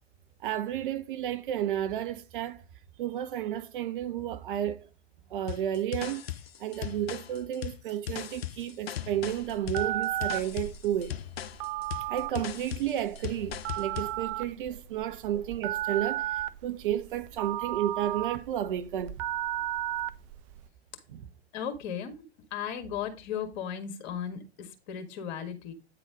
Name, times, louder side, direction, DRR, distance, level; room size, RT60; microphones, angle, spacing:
voice 1, 0.4-2.6 3.0-4.8 5.3-6.2 6.6-11.1 12.1-19.2 21.1-21.3, right 11 dB, 50° right, 0.9 m, -32 dB
sound 1, 5.5-14.2, left 12 dB, 65° left, 0.6 m, -38 dB
Telephone, 9.2-20.6, right 13 dB, 30° right, 0.5 m, -34 dB
voice 2, 21.5-22.2 22.5-25.7, left 8 dB, 40° left, 1.6 m, -36 dB
9.2 x 3.9 x 5.0 m
figure-of-eight pair, 105°, 32 cm